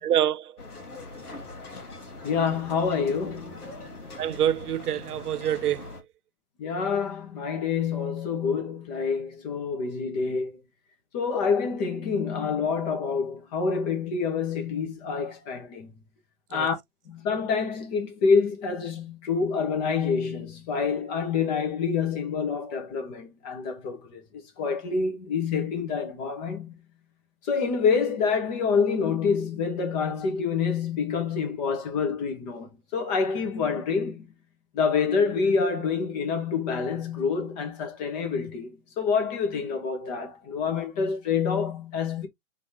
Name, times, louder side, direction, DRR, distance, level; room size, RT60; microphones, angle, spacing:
voice 1, 0.0-0.5 4.2-5.9 16.5-16.7, right 10 dB, 85° right, 0.5 m, -26 dB
sound 1, 0.6-6.0, left 2 dB, 80° left, 2.0 m, -42 dB
voice 2, 2.2-3.7 6.6-10.6 11.1-15.9 16.5-16.8 17.1-24.2 24.6-26.7 27.4-34.3 34.7-42.3, left 5 dB, 30° left, 1.3 m, -27 dB
3.8 x 3.8 x 2.9 m
hypercardioid pair, 135°, 45 cm